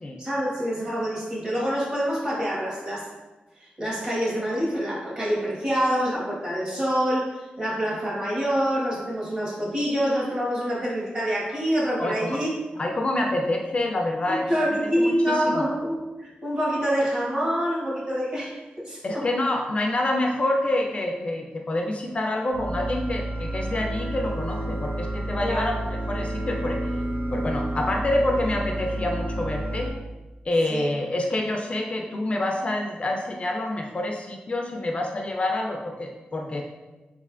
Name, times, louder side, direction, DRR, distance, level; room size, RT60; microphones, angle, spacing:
voice 1, 0.2-3.1 3.6-12.5 14.3-19.3 25.4-25.8 30.7-30.9, equal, 30° right, -7 dB, 1.3 m, -26 dB
voice 2, 12.0-12.4 12.8-14.5 15.0-15.1 15.5-15.6 19.0-25.7 26.1-26.8 27.3-29.9 30.4-36.6, left 1 dB, 35° left, 2 dB, 0.3 m, -27 dB
sound 1, 22.5-29.9, right 1 dB, 85° right, 0.9 m, -30 dB
3.6 x 3.2 x 2.4 m, 1.2 s
wide cardioid pair, 100°, 3 cm